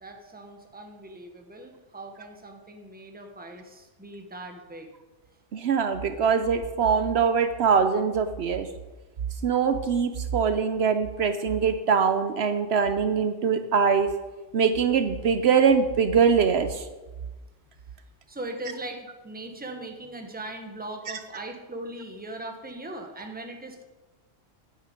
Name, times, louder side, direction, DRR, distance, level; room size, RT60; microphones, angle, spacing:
voice 1, 0.0-4.9 18.3-23.8, right 1 dB, 10° right, 4 dB, 1.0 m, -39 dB
voice 2, 5.5-8.7 9.4-14.1 14.5-16.9, right 6 dB, 65° right, 9 dB, 0.9 m, -23 dB
9.4 x 9.2 x 5.1 m, 1.2 s
omnidirectional pair, 1.3 m